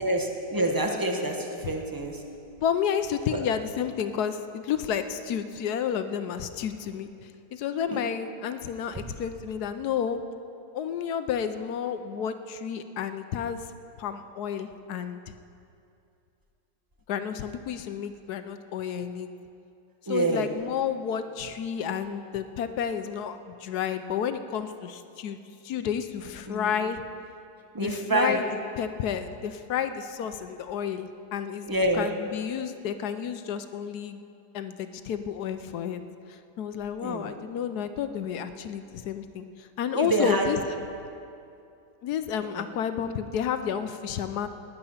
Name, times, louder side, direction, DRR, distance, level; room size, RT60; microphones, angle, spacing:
voice 1, 0.0-2.2 3.3-3.5 7.9-8.0 20.1-20.5 26.5-26.7 27.7-28.4 31.6-32.1 37.0-37.4 39.9-40.5 42.6-42.7, right 1 dB, 15° right, 2 dB, 1.0 m, -27 dB
voice 2, 2.6-10.2 10.7-13.6 14.0-15.2 17.1-19.3 20.1-25.4 25.6-27.0 27.8-28.4 28.8-34.2 34.5-36.0 36.3-40.6 42.0-44.5, left 8 dB, 70° left, 10 dB, 1.1 m, -31 dB
18.5 x 10.5 x 5.7 m, 2.5 s
omnidirectional pair, 1.9 m